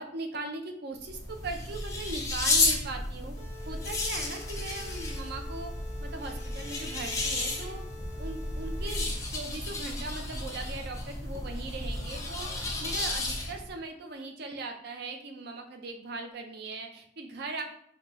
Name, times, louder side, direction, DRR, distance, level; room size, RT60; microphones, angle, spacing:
voice 1, 0.0-3.4 3.7-5.7 6.0-7.8 8.2-17.6, right 3 dB, 60° right, 5 dB, 0.5 m, -39 dB
sound 1, 1.0-13.7, left 2 dB, 20° left, 0.5 m, -32 dB
sound 2, 3.4-9.3, left 4 dB, 35° right, 1.3 m, -49 dB
4.1 x 2.3 x 3.0 m, 0.70 s
head